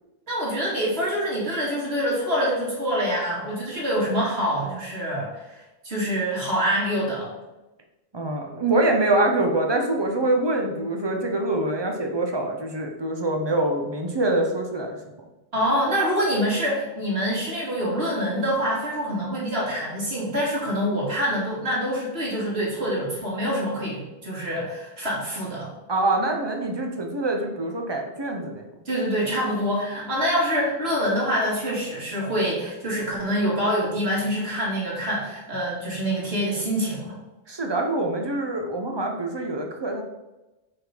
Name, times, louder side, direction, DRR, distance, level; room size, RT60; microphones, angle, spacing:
voice 1, 0.3-7.3 15.5-25.7 28.9-37.2, equal, 80° right, -6 dB, 2.6 m, -25 dB
voice 2, 8.1-15.0 25.9-28.7 37.5-40.0, right 2 dB, 25° right, 2 dB, 0.9 m, -25 dB
5.8 x 3.9 x 5.2 m, 1.0 s
omnidirectional pair, 1.0 m